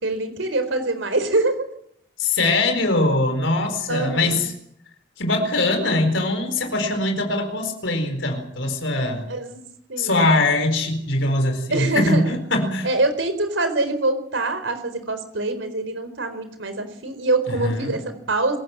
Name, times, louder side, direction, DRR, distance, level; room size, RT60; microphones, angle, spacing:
voice 1, 0.0-1.7 3.9-4.4 9.3-10.3 11.7-12.4 12.8-18.6, right 2 dB, 85° right, 9 dB, 4.3 m, -24 dB
voice 2, 2.2-4.5 5.2-9.3 10.0-12.9 17.5-17.9, left 2 dB, 85° left, 5 dB, 4.5 m, -22 dB
26.5 x 17.5 x 7.5 m, 0.72 s
head